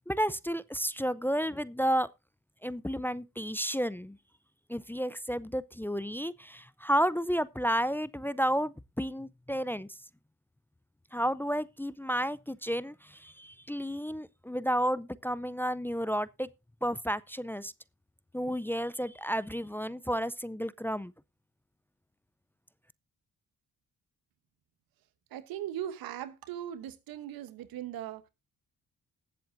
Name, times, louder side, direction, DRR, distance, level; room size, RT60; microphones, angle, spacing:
voice 1, 0.1-2.1 2.6-4.2 4.7-9.9 11.1-16.5 16.8-17.7 18.3-21.1, equal, 5° left, 0.5 m, -31 dB
voice 2, 25.3-28.3, right 11 dB, 90° right, 1.1 m, -39 dB
20.0 x 7.7 x 2.6 m
supercardioid pair, 60°, 35 cm